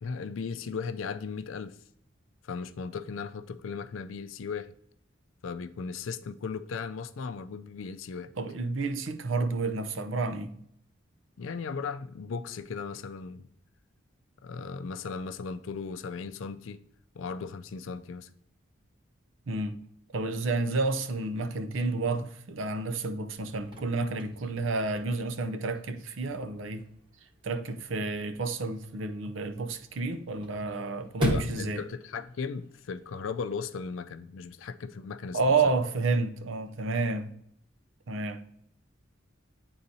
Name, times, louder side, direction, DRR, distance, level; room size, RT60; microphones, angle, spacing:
voice 1, 0.0-1.8 2.4-4.7 5.4-8.3 11.4-13.5 14.4-16.8 17.1-18.3 31.2-35.4, left 5 dB, 80° left, 0.4 m, -37 dB
voice 2, 8.4-10.6 19.5-19.8 20.1-26.9 27.4-31.8 35.3-37.3 38.1-38.4, right 3 dB, 80° right, 0.6 m, -30 dB
Chirp tweet / Car / Slam, 23.4-33.4, left 1 dB, 25° right, 1.2 m, -39 dB
9.5 x 3.9 x 2.7 m
head